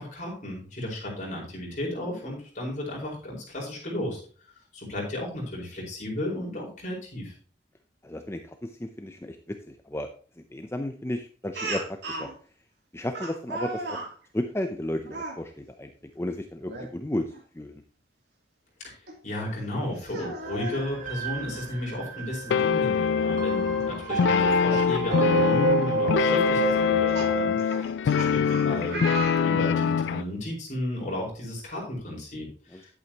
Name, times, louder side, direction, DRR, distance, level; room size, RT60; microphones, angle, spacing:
voice 1, 0.0-4.2 4.7-7.3 18.8-18.9 19.2-29.0 29.4-32.9, left 1 dB, 40° left, -3 dB, 4.8 m, -34 dB
voice 2, 8.0-10.1 10.5-11.8 12.1-12.3 12.9-14.0 14.3-17.8 32.7-32.9, left 1 dB, 15° left, 6 dB, 0.6 m, -33 dB
Speech, 11.5-12.3 13.1-14.1 15.0-15.4 16.6-16.9 17.3-17.4 19.1-19.2 20.0-20.8 22.2-22.3 22.6-22.7 24.6-24.7 25.3-25.5 26.6-30.0, right 2 dB, 65° right, 3.0 m, -35 dB
sound 1, 20.4-27.5, right 3 dB, 45° right, 2.0 m, -29 dB
sound 2, 22.5-30.2, left 7 dB, 75° left, 0.3 m, -24 dB
11.0 x 8.6 x 2.9 m, 0.41 s
head